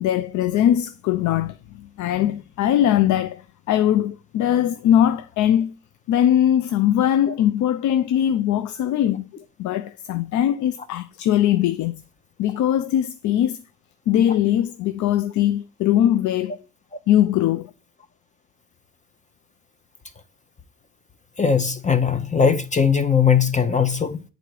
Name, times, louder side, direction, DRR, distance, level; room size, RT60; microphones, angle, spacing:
voice 1, 0.0-5.7 6.1-11.9 12.4-13.6 14.1-16.6 17.1-17.7, left 11 dB, 80° left, 0.5 m, -21 dB
voice 2, 21.4-24.2, left 6 dB, 25° left, 0.6 m, -19 dB
8.1 x 3.9 x 4.6 m
cardioid pair, 100°, 29 cm